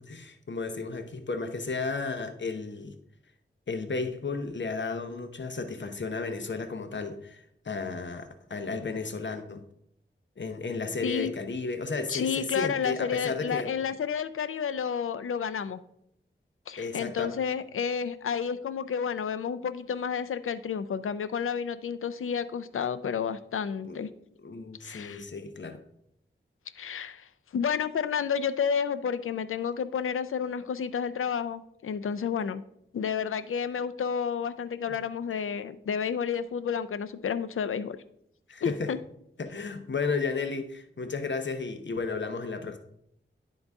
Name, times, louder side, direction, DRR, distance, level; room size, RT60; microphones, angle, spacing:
voice 1, 0.0-3.0 3.7-9.6 10.4-13.7 16.8-17.3 23.8-24.1 24.4-25.8 34.9-35.0 38.5-38.9 39.4-42.8, left 4 dB, 60° left, 7 dB, 0.8 m, -33 dB
voice 2, 12.1-15.8 16.7-24.1 24.8-25.2 26.8-32.6 32.9-38.0 38.6-39.0, left 7 dB, 85° left, 12 dB, 0.4 m, -31 dB
10.5 x 3.9 x 3.5 m, 0.75 s
wide cardioid pair, 55°, 21 cm